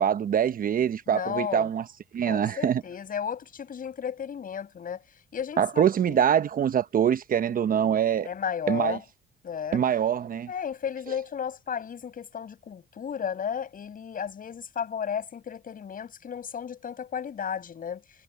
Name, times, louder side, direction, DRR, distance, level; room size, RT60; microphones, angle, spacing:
voice 1, 0.0-1.8 2.1-2.8 5.6-8.3 8.7-9.0 9.7-10.5, right 9 dB, 45° right, 0.9 m, -24 dB
voice 2, 1.1-1.7 2.3-6.2 8.2-9.0 9.4-9.9 10.5-18.0, left 7 dB, 45° left, 7.6 m, -34 dB
cardioid pair, 105°, 20 cm